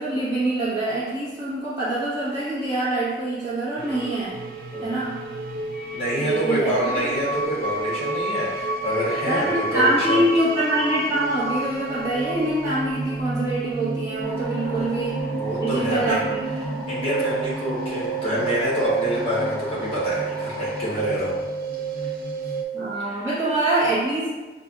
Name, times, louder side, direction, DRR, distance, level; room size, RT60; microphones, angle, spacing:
voice 1, 0.0-4.4 4.8-5.2 6.2-6.7 9.3-15.2 15.6-16.4 16.7-16.8 22.7-24.3, right 1 dB, 15° right, -10 dB, 1.1 m, -24 dB
sound 1, 3.8-22.6, right 3 dB, 55° right, 0.4 m, -30 dB
voice 2, 5.9-10.2 14.6-14.9 15.3-16.3 16.9-21.4 23.1-23.2, equal, 35° left, -8 dB, 1.3 m, -26 dB
sound 2, 14.2-21.0, equal, 10° left, 0.5 m, -39 dB
6.5 x 2.6 x 2.4 m, 1.3 s
head